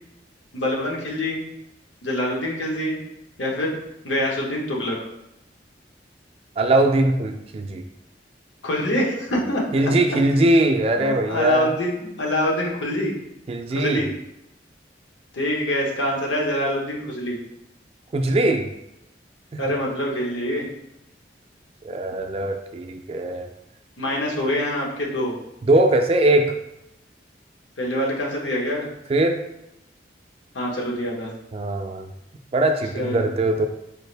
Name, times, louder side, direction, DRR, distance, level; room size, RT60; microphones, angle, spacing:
voice 1, 0.5-1.4 2.0-3.0 3.4-3.7 4.0-5.0 8.6-9.6 11.0-13.1 13.7-14.1 15.3-17.4 19.6-20.7 24.0-25.3 27.8-28.9 30.5-31.3 32.9-33.3, left 1 dB, 90° left, -2 dB, 1.1 m, -25 dB
voice 2, 6.6-7.8 9.7-11.7 13.5-14.1 18.1-18.7 19.5-19.7 21.8-23.5 25.6-26.6 29.1-29.4 31.5-32.1 32.5-33.7, right 1 dB, 30° right, 5 dB, 0.3 m, -21 dB
4.4 x 2.5 x 3.3 m, 0.86 s
head